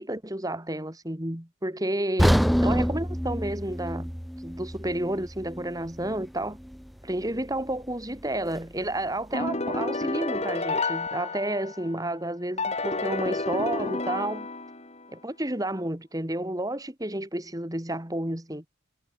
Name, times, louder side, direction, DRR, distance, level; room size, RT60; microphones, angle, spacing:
voice 1, 0.0-4.1 4.4-6.6 7.0-14.5 15.1-18.6, right 1 dB, 15° right, 2.0 m, -31 dB
sound 1, 2.2-6.3 6.6-6.8 7.4-7.5, equal, ahead, 0.4 m, -26 dB
sound 2, 9.3-12.0 12.6-15.1, left 3 dB, 30° left, 2.2 m, -30 dB
head